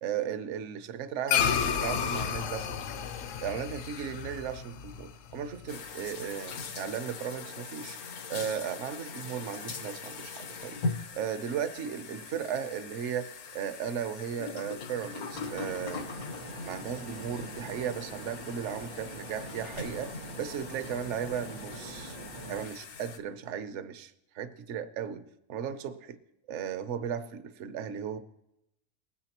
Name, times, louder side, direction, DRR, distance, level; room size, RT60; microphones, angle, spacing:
voice 1, 0.0-3.1 3.4-8.0 8.3-16.1 16.6-22.2 22.5-25.2 25.5-26.2 26.5-28.2, right 8 dB, 60° right, 11 dB, 1.0 m, -36 dB
sound 1, 1.3-5.9, left 8 dB, 65° left, 1.0 m, -31 dB
sound 2, 5.7-23.2, left 4 dB, 80° left, 1.4 m, -41 dB
sound 3, 15.3-22.7, right 2 dB, 80° right, 2.0 m, -44 dB
20.0 x 9.8 x 3.0 m, 0.85 s
omnidirectional pair, 1.5 m